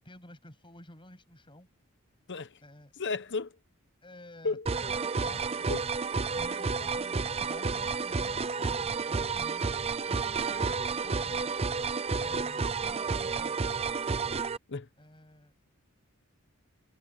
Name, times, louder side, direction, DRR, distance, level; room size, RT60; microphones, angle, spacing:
voice 1, 0.0-1.7 2.6-2.9 4.0-5.9 6.3-11.6 12.1-13.6 15.0-15.5, left 1 dB, 25° left, 7.9 m, -51 dB
voice 2, 2.3-2.6 3.0-3.5 4.4-4.7 5.7-5.9 14.7-14.9, left 4 dB, 55° left, 1.0 m, -33 dB
sound 1, 4.7-14.6, right 4 dB, 30° right, 0.6 m, -31 dB
head